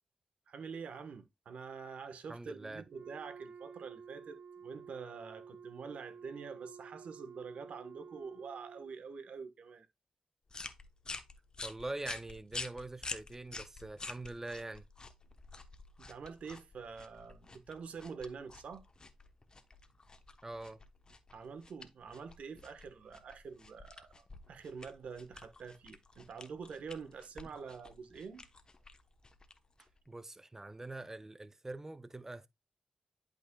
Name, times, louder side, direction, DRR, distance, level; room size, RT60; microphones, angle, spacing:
voice 1, 0.5-9.9 16.1-18.8 21.3-28.4 29.8-29.9, right 5 dB, 80° right, 1.3 m, -46 dB
voice 2, 2.3-2.8 11.6-14.8 20.4-20.8 30.1-32.5, right 2 dB, 20° right, 0.6 m, -44 dB
Wind instrument woodwind instrument, 2.8-9.0, right 6 dB, 65° right, 0.6 m, -52 dB
sound 1, 10.5-30.1, left 3 dB, 35° left, 1.1 m, -49 dB
11.0 x 5.1 x 2.3 m
cardioid pair, 65°, 2 cm